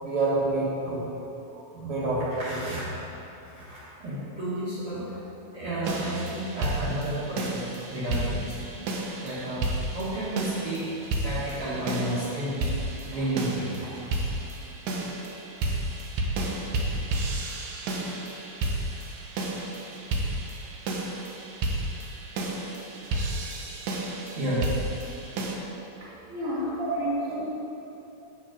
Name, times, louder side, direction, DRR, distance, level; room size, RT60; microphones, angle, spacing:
voice 1, 0.0-1.0 1.5-2.8 3.4-5.2 5.5-8.6 9.2-9.7 9.9-10.9 11.2-12.6 13.0-13.7 23.4-23.5 24.4-25.1 26.8-26.9, right 1 dB, 55° right, -11 dB, 2.2 m, -30 dB
sound 1, 5.9-25.6, right 2 dB, 75° right, 2.1 m, -32 dB
voice 2, 26.0-27.5, equal, 30° right, -9 dB, 1.9 m, -32 dB
8.4 x 4.8 x 5.0 m, 2.9 s
omnidirectional pair, 3.5 m